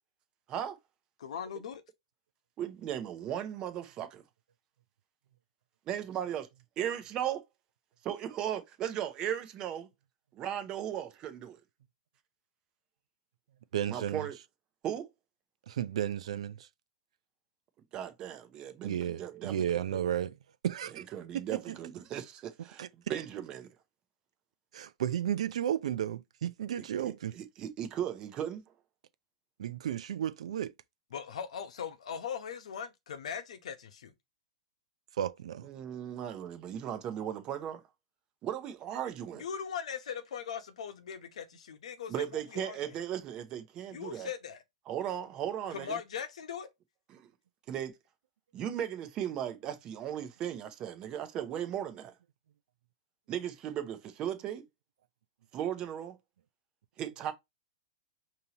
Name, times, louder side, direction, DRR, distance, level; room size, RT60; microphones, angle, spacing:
voice 1, 1.2-1.8 31.1-34.1 39.3-42.9 43.9-44.6 45.7-46.7, left 7 dB, 75° left, 0.9 m, -40 dB
voice 2, 2.6-4.2 5.9-6.4 6.8-7.4 8.0-9.9 10.3-11.6 13.9-14.4 14.8-15.1 17.9-19.5 21.1-23.7 27.3-28.6 35.6-37.8 38.4-39.4 42.1-44.3 44.9-46.0 47.1-47.3 47.7-47.9 48.5-52.1 53.3-54.6 55.5-56.2 57.0-57.3, right 10 dB, 25° right, 0.7 m, -36 dB
voice 3, 13.7-14.3 15.7-16.7 18.8-20.4 20.6-21.0 21.3-21.8 22.8-22.9 24.7-27.4 29.6-30.7 35.2-35.7, right 10 dB, 70° right, 0.5 m, -33 dB
5.2 x 2.8 x 2.9 m
hypercardioid pair, 160°, 3 cm